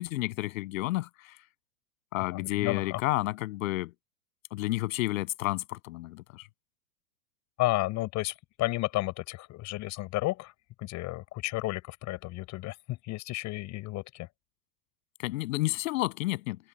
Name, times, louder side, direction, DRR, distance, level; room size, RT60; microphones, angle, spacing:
voice 1, 0.0-1.3 2.1-3.9 4.5-6.5 15.2-16.6, left 18 dB, 60° left, 7.3 m, -31 dB
voice 2, 2.3-3.0 7.6-10.5 10.8-14.3, left 18 dB, 40° left, 5.4 m, -32 dB
hypercardioid pair, 125°, 44 cm